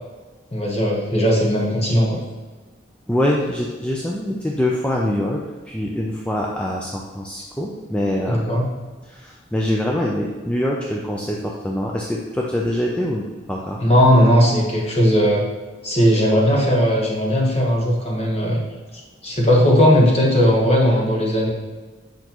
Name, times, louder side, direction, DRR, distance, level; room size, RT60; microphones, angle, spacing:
voice 1, 0.5-2.2 8.3-8.6 13.8-15.5 15.8-18.6 19.2-21.5, equal, 30° left, -2 dB, 1.2 m, -17 dB
voice 2, 3.1-5.4 5.7-8.6 9.0-13.8, left 1 dB, 5° left, -3 dB, 0.4 m, -24 dB
8.0 x 5.2 x 3.0 m, 1.3 s
head